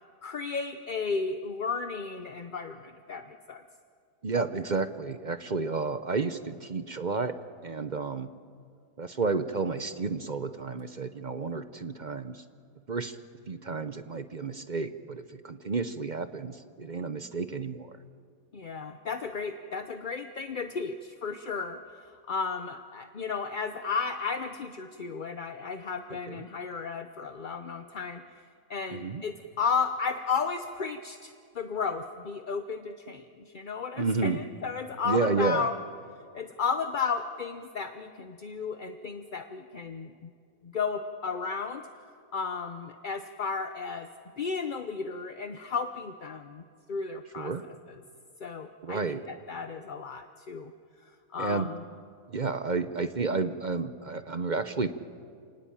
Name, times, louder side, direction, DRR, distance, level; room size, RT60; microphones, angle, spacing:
voice 1, 0.2-3.6 18.5-28.2 28.7-35.8 36.3-40.3 40.6-41.9 42.3-44.1 44.4-46.6 46.9-47.5 47.9-48.0 48.4-50.7 51.0-51.8, left 5 dB, 40° left, 8 dB, 0.8 m, -34 dB
voice 2, 4.2-7.4 7.6-8.3 9.0-12.4 12.9-13.2 13.5-18.0 26.3-26.5 28.9-29.2 34.0-34.4 35.0-35.7 47.4-47.6 48.8-49.2 51.4-51.7 52.3-54.9, right 4 dB, 40° right, 11 dB, 0.7 m, -31 dB
27.5 x 19.0 x 8.9 m, 2.3 s
omnidirectional pair, 1.6 m